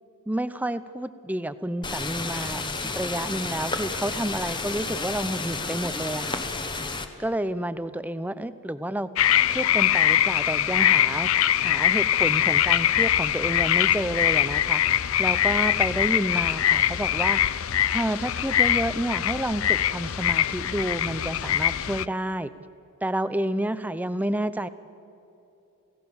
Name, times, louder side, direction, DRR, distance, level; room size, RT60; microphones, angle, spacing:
voice 1, 0.3-6.4 7.2-9.1 9.5-11.3 11.6-14.8 15.2-17.6 17.9-22.5 23.0-24.7, right 1 dB, 5° right, 13 dB, 0.6 m, -29 dB
sound 1, 1.8-7.1, left 3 dB, 20° left, 1.3 m, -31 dB
sound 2, 9.2-22.1, left 11 dB, 70° left, 0.5 m, -23 dB
29.0 x 17.0 x 7.1 m, 2.9 s
head